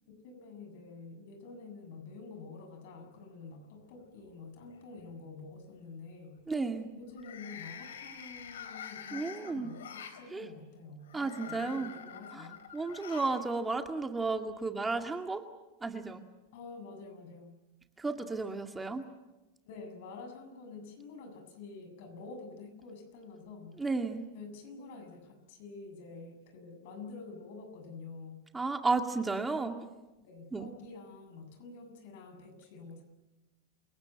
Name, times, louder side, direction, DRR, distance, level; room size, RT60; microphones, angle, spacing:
voice 1, 0.1-6.4 6.9-12.6 16.5-17.6 19.7-23.8 24.3-28.4 29.3-29.6 30.2-33.0, left 4 dB, 65° left, 6 dB, 7.5 m, -48 dB
sound 1, 3.6-4.2 4.6-5.0 7.1-10.2 11.0-13.5 13.7-13.8 14.9-15.0, left 8 dB, 90° left, 3.7 m, -46 dB
voice 2, 6.5-6.9 9.1-9.7 10.3-10.5 11.1-11.9 12.3-15.4 15.8-16.2 18.0-19.1 23.8-24.3 28.5-29.7 30.5-30.7, right 3 dB, 10° right, 5 dB, 2.1 m, -33 dB
28.0 x 17.5 x 9.0 m, 1.0 s
hypercardioid pair, 120°, 0 cm